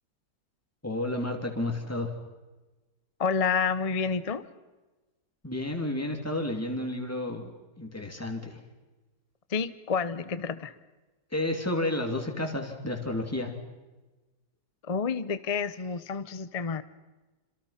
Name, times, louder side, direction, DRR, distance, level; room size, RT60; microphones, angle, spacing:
voice 1, 0.8-2.1 5.4-8.6 11.3-13.5, left 1 dB, 10° left, 3 dB, 2.9 m, -31 dB
voice 2, 3.2-4.4 9.5-10.7 14.8-16.8, left 5 dB, 35° left, 13 dB, 0.6 m, -29 dB
27.0 x 26.5 x 5.8 m, 1.2 s
omnidirectional pair, 1.9 m